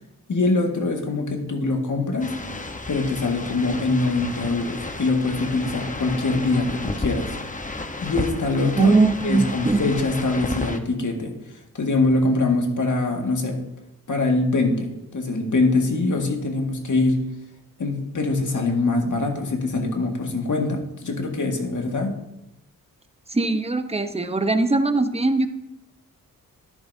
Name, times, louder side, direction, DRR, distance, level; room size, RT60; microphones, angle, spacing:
voice 1, 0.3-2.3 2.9-7.3 8.0-8.9 9.2-11.3 11.7-13.6 14.1-17.2 17.8-22.2, left 3 dB, 60° left, 2 dB, 2.0 m, -23 dB
sound 1, 2.2-10.8, left 2 dB, 20° left, 1.1 m, -32 dB
voice 2, 8.7-9.9 23.3-25.5, right 3 dB, 15° right, 8 dB, 0.9 m, -20 dB
13.0 x 10.5 x 2.8 m, 0.89 s
cardioid pair, 55°, 35 cm